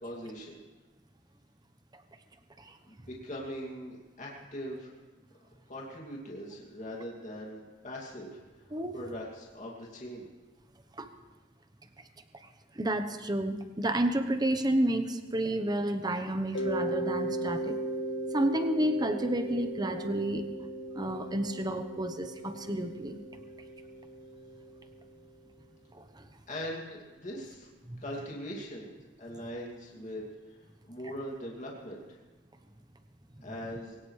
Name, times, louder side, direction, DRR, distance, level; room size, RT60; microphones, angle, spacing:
voice 1, 0.0-0.6 2.9-4.9 5.7-10.3 26.5-27.7 28.0-30.6 30.8-32.0 33.4-34.0, equal, 40° left, -3 dB, 2.5 m, -41 dB
voice 2, 12.7-17.7 18.3-20.4 20.9-23.2 25.9-26.3 27.9-28.0, right 1 dB, 20° right, 8 dB, 1.0 m, -30 dB
Mallet percussion, 16.5-25.1, right 1 dB, 75° left, 1.6 m, -37 dB
22.0 x 18.0 x 3.3 m, 1.2 s
head